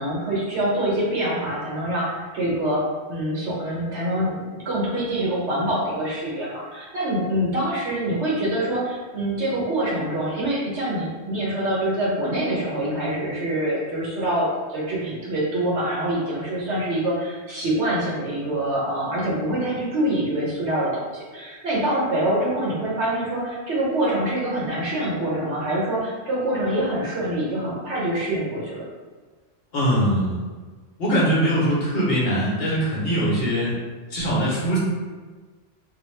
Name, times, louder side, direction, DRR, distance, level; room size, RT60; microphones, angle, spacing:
voice 1, 0.0-2.8 3.1-28.8, right 1 dB, 70° right, -5 dB, 1.1 m, -25 dB
voice 2, 29.7-30.4 31.0-33.7 34.1-34.8, equal, 60° left, -6 dB, 1.0 m, -22 dB
2.5 x 2.2 x 3.1 m, 1.4 s
omnidirectional pair, 1.2 m